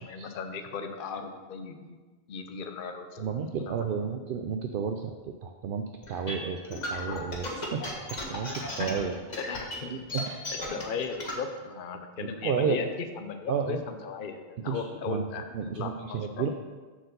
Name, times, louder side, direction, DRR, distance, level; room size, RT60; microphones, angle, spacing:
voice 1, 0.0-2.0 2.3-3.3 3.7-3.9 9.4-9.9 10.7-12.9 13.2-16.5, left 5 dB, 60° left, 7 dB, 0.8 m, -37 dB
voice 2, 3.2-5.1 5.4-5.8 6.1-7.8 8.1-8.5 8.8-9.2 9.9-10.2 12.2-12.9 13.5-13.8 14.7-15.3 15.5-16.5, right 6 dB, 65° right, 5 dB, 0.7 m, -31 dB
sound 1, 6.0-11.4, left 1 dB, 45° left, 1.5 m, -35 dB
7.5 x 4.6 x 6.7 m, 1.4 s
omnidirectional pair, 1.0 m